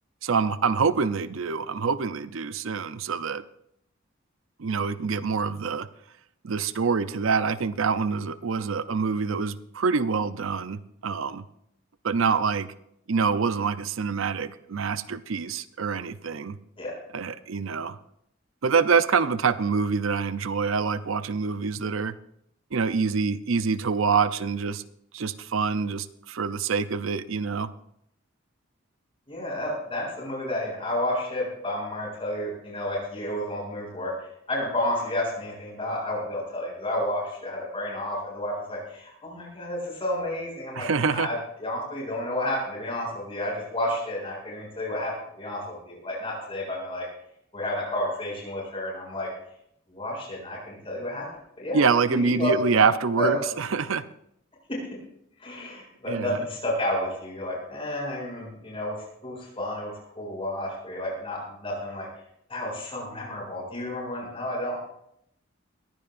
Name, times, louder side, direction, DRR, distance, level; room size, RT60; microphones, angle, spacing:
voice 1, 0.2-3.4 4.6-5.9 6.4-11.4 12.0-12.7 13.1-16.6 17.1-18.0 18.6-22.1 22.7-24.8 25.1-27.7 40.8-41.3 51.7-54.0 56.1-56.4, right 5 dB, 75° right, 13 dB, 0.6 m, -26 dB
voice 2, 29.3-47.1 47.5-49.3 49.9-51.3 51.6-51.8 52.1-52.8 53.2-53.4 55.4-59.0 59.2-62.1 62.5-64.8, left 1 dB, 30° left, -2 dB, 7.3 m, -31 dB
21.0 x 15.5 x 2.6 m, 0.74 s
head